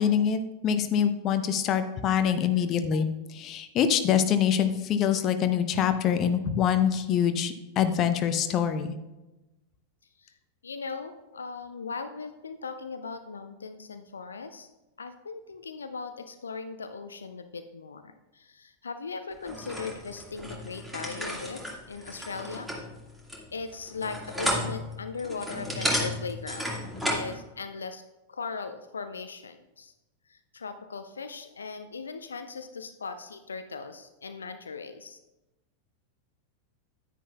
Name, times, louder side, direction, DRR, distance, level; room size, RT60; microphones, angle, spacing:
voice 1, 0.0-9.0, left 8 dB, 35° left, 9 dB, 0.7 m, -25 dB
voice 2, 10.6-14.7 15.0-22.7 23.5-26.7 27.0-28.0 28.3-29.9 30.3-35.2, left 4 dB, 70° left, 9 dB, 0.5 m, -39 dB
sound 1, 19.4-27.3, equal, 5° right, 2.0 m, -33 dB
10.0 x 9.8 x 2.4 m, 1.0 s
figure-of-eight pair, 90°, 0 cm